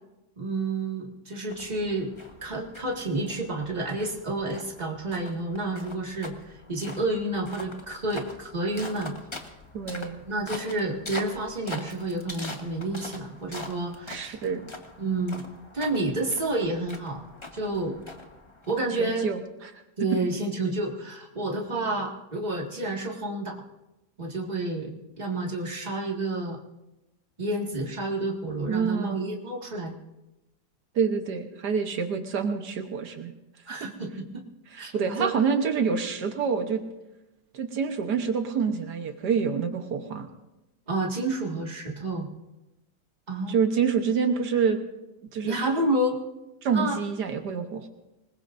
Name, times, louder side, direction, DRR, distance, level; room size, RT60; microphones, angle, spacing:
voice 1, 0.4-2.1 2.4-9.1 10.3-14.4 15.0-15.4 15.7-17.2 17.5-18.0 18.7-19.3 20.0-23.6 24.2-24.9 25.2-26.6 27.4-29.9 33.7-34.3 34.8-34.9 35.2-35.5 40.9-42.3 43.3-43.6 45.4-46.2 46.7-47.0, right 2 dB, 25° right, 0 dB, 2.0 m, -29 dB
sound 1, 1.5-19.2, left 2 dB, 20° left, 1.1 m, -43 dB
voice 2, 9.7-10.2 14.1-14.7 18.9-19.7 28.7-29.2 30.9-33.3 34.7-36.8 37.5-40.3 43.5-44.8 45.3-45.6 46.6-47.9, right 6 dB, 80° right, 6 dB, 1.7 m, -27 dB
26.0 x 20.5 x 2.6 m, 0.98 s
omnidirectional pair, 1.8 m